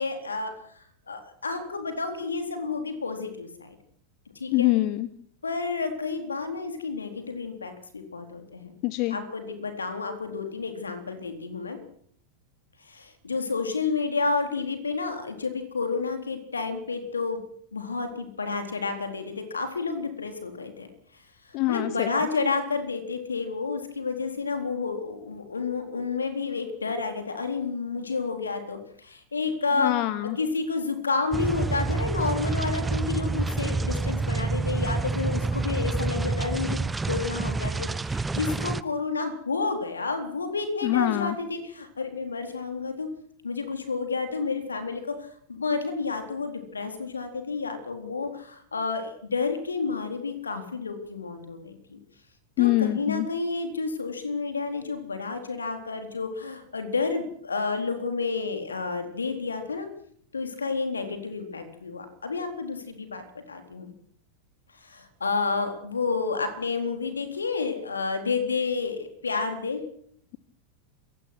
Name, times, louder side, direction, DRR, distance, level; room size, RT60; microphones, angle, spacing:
voice 1, 0.0-3.8 4.4-4.7 5.4-8.8 9.1-11.8 12.8-17.4 17.7-20.9 21.1-21.2 21.7-30.1 30.4-43.1 43.4-52.0 52.6-59.9 60.3-63.9 64.7-69.8, left 4 dB, 75° left, 7 dB, 4.0 m, -30 dB
voice 2, 4.5-5.1 8.8-9.2 21.5-22.1 29.8-30.4 40.8-41.3 52.6-53.3, left 18 dB, 40° left, 17 dB, 1.0 m, -24 dB
sound 1, 31.3-38.8, right 3 dB, 10° right, 0.8 m, -28 dB
27.0 x 16.0 x 6.2 m, 0.64 s
figure-of-eight pair, 90°, 0 cm